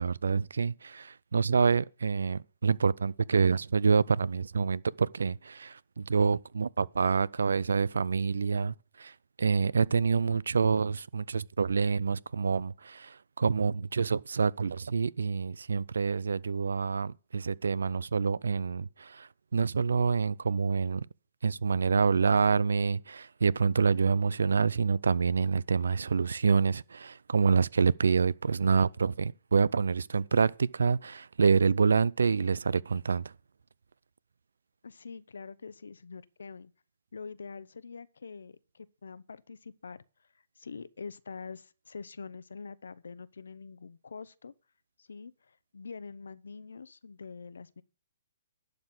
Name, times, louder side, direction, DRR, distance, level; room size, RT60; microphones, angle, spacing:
voice 1, 0.0-9.1 9.4-21.1 21.4-33.3, right 5 dB, 90° right, 0.4 m, -27 dB
voice 2, 34.8-36.7 37.1-40.0 40.6-44.5 45.0-47.8, left 5 dB, 90° left, 0.7 m, -45 dB
11.5 x 4.2 x 7.9 m
hypercardioid pair, 150°, 0 cm